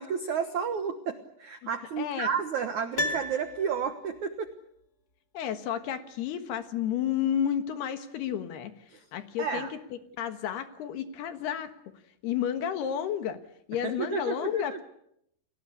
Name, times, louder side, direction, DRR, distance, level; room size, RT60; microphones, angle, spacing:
voice 1, 0.0-4.5 8.9-9.0 9.4-9.7 13.8-14.8, right 6 dB, 70° right, 8 dB, 1.8 m, -31 dB
voice 2, 2.0-2.3 5.3-8.7 9.1-9.8 10.2-11.7 12.2-13.4 13.7-14.8, left 9 dB, 65° left, 9 dB, 3.2 m, -31 dB
Piano, 2.9-4.2 4.5-4.6, left 1 dB, 40° left, 1.3 m, -33 dB
30.0 x 19.5 x 8.3 m, 0.74 s
omnidirectional pair, 5.4 m